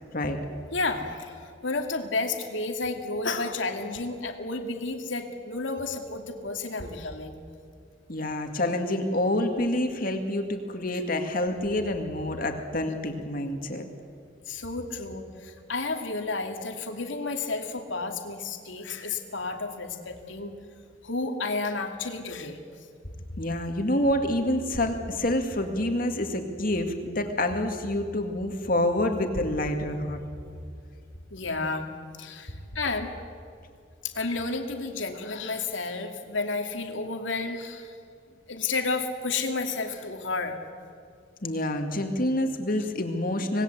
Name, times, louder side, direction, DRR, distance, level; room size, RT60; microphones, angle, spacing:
voice 1, 0.7-7.4 14.5-20.5 21.0-22.6 31.3-31.9 32.2-33.1 34.0-38.0 38.5-40.6, left 3 dB, 80° left, 4 dB, 2.5 m, -31 dB
voice 2, 8.1-13.8 23.4-30.2 41.4-43.6, left 1 dB, 50° left, 5 dB, 2.3 m, -27 dB
26.5 x 20.0 x 8.1 m, 2.3 s
head